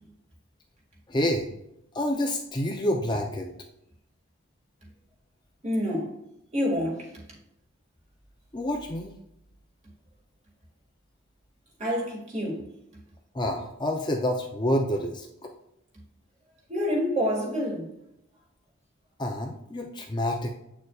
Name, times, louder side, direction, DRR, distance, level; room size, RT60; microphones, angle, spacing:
voice 1, 1.1-1.5 1.9-3.5 8.5-9.1 13.3-15.5 19.2-20.5, left 1 dB, 20° left, 0.6 m, -28 dB
voice 2, 5.6-6.1 6.5-7.1 11.8-12.7 16.7-17.9, equal, 30° right, 2.1 m, -27 dB
8.1 x 6.5 x 2.4 m
head